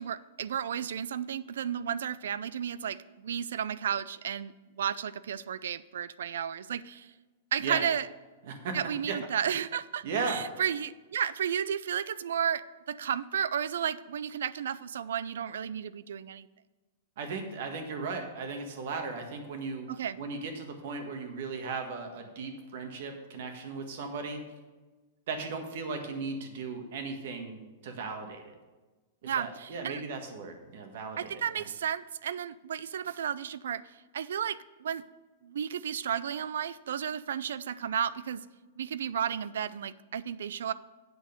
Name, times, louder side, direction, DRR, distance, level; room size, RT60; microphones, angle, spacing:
voice 1, 0.0-7.1 7.5-8.1 8.7-12.6 12.9-16.5 19.9-20.2 29.2-30.0 31.2-33.8 34.1-35.0 35.4-38.4 38.8-40.7, right 8 dB, 90° right, 18 dB, 0.4 m, -33 dB
voice 2, 8.5-8.8 9.1-9.2 10.0-10.4 17.2-19.9 20.2-24.4 25.3-27.6 27.8-28.5 29.2-31.6, right 4 dB, 55° right, 5 dB, 1.6 m, -36 dB
8.2 x 6.3 x 6.6 m, 1.2 s
supercardioid pair, 170°, 0 cm